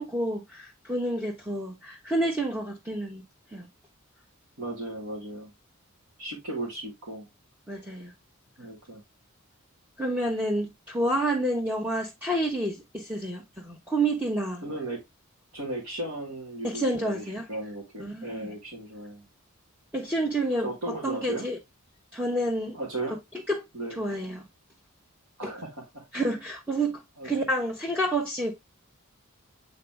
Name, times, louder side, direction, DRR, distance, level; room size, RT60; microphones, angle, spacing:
voice 1, 0.0-3.2 3.5-3.7 7.7-8.1 10.0-14.6 16.6-17.5 18.0-18.5 19.9-21.6 22.1-22.8 23.5-23.6 24.0-24.4 25.4-25.5 26.1-28.6, right 1 dB, 10° right, 0.9 m, -29 dB
voice 2, 4.6-5.5 6.2-7.3 8.6-9.0 14.6-15.0 15.5-19.3 20.6-21.5 22.7-23.2 23.7-24.0 25.4-26.0 27.2-27.5, right 2 dB, 80° right, 2.3 m, -36 dB
7.5 x 4.0 x 3.3 m
head